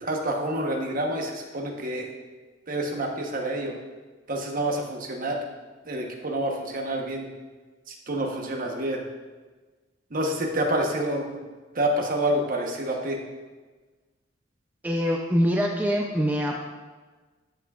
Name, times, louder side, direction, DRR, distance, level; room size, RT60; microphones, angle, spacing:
voice 1, 0.0-2.1 2.7-3.7 4.3-5.4 5.8-7.3 7.9-9.0 10.1-11.4 11.7-13.2, right 1 dB, 45° right, 1 dB, 1.0 m, -28 dB
voice 2, 14.8-16.6, equal, 10° right, 0 dB, 0.5 m, -24 dB
13.0 x 5.9 x 2.4 m, 1.3 s
head